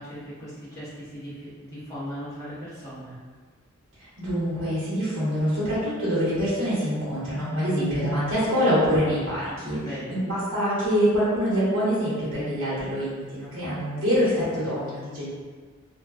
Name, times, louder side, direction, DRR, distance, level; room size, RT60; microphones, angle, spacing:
voice 1, 0.0-3.2 9.8-10.2, equal, 15° left, -13 dB, 1.1 m, -38 dB
voice 2, 4.0-9.8 10.1-15.3, equal, 80° right, -12 dB, 1.1 m, -25 dB
2.8 x 2.2 x 2.4 m, 1.5 s
head